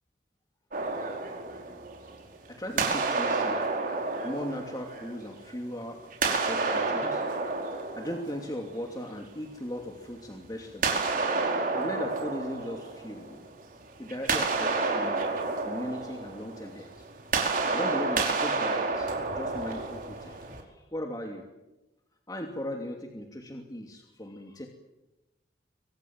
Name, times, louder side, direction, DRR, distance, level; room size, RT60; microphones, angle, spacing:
sound 1, 0.7-2.3 2.8-5.6 6.1-9.0 10.8-13.6 13.9-20.6, right 3 dB, 50° right, 5.2 m, -30 dB
voice 1, 2.5-3.7 4.2-7.2 7.7-11.1 11.5-13.5 14.0-15.3 15.6-17.0 17.7-21.5 22.3-24.7, equal, 20° left, 2 dB, 2.7 m, -38 dB
28.5 x 25.0 x 7.5 m, 1.0 s
head